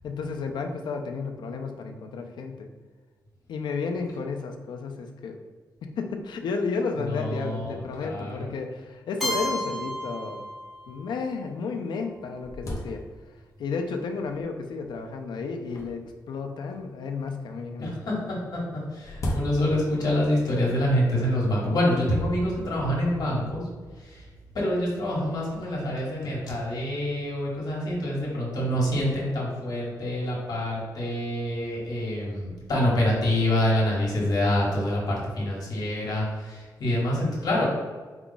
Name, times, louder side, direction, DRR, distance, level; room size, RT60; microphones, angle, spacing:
voice 1, 0.0-2.7 3.5-5.4 5.8-10.4 10.9-13.0 13.6-18.2 19.2-19.3, left 4 dB, 85° left, 5 dB, 0.5 m, -32 dB
voice 2, 7.1-7.7 8.0-8.5 17.8-18.6 18.9-23.6 24.5-37.6, left 1 dB, 60° left, -4 dB, 1.3 m, -26 dB
Keyboard (musical), 9.2-11.1, equal, ahead, 1.1 m, -32 dB
sound 1, 9.8-9.9 10.6-10.7 11.3-11.4 11.8-13.5 14.3-14.7 15.6-17.0 18.2-20.1, equal, 45° left, 0.7 m, -37 dB
4.6 x 2.3 x 3.9 m, 1.4 s
wide cardioid pair, 140°, 7 cm